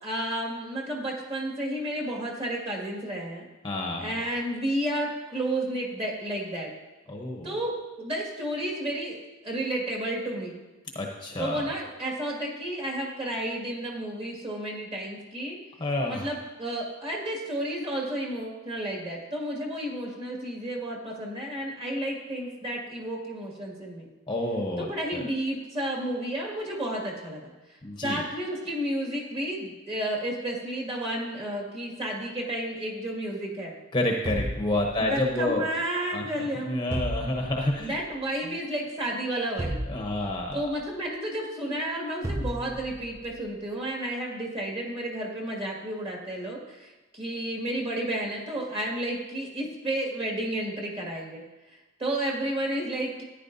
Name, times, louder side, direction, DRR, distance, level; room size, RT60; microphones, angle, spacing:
voice 1, 0.0-3.5 4.0-6.7 7.4-9.2 9.4-10.6 11.4-15.6 16.1-24.1 24.8-33.7 35.0-36.8 37.8-39.8 40.5-51.4 52.0-53.2, right 1 dB, 30° right, -2 dB, 2.0 m, -32 dB
voice 2, 3.6-4.2 7.1-7.5 10.9-11.6 15.8-16.3 24.3-25.2 27.8-28.2 33.9-35.6 36.1-38.0 38.4-38.5 39.9-40.6, left 1 dB, 20° left, 1 dB, 0.9 m, -29 dB
sound 1, 34.3-35.4 36.9-37.9 39.6-40.7 42.2-43.2, right 1 dB, 10° right, 0.4 m, -33 dB
14.0 x 9.9 x 2.7 m, 1.1 s
head